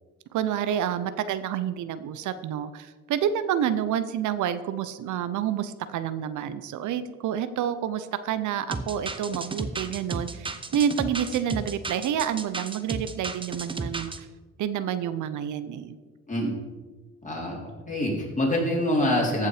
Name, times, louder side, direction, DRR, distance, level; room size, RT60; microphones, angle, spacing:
voice 1, 0.3-14.3 14.6-16.0, right 9 dB, 75° right, 13 dB, 0.7 m, -29 dB
sound 1, 8.7-14.2, right 3 dB, 15° right, 0.8 m, -33 dB
voice 2, 17.2-19.5, left 1 dB, 25° left, -2 dB, 3.8 m, -26 dB
14.5 x 5.7 x 4.9 m, 1.3 s
cardioid pair, 90°, 30 cm